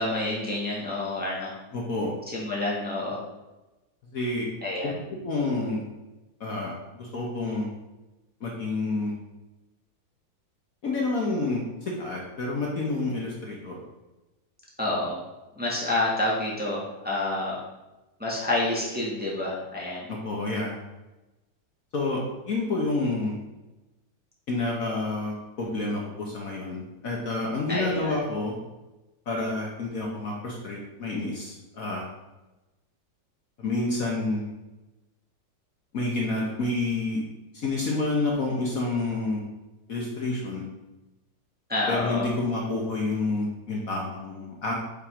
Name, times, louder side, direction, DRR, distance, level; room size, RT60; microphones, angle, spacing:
voice 1, 0.0-1.5 2.3-3.2 4.6-5.0 14.8-15.2 15.6-17.6 18.2-20.1 27.7-28.2 41.7-42.3, left 2 dB, 5° right, -6 dB, 1.5 m, -28 dB
voice 2, 1.7-2.1 4.1-4.5 5.2-5.8 6.4-7.7 8.4-9.1 10.8-11.6 12.0-13.8 20.1-20.7 21.9-23.3 24.5-28.5 29.3-32.1 33.6-34.4 35.9-37.2 37.5-39.4 39.9-40.7 41.9-44.7, left 2 dB, 55° left, -2 dB, 1.4 m, -29 dB
5.5 x 5.3 x 5.0 m, 1.1 s
omnidirectional pair, 2.0 m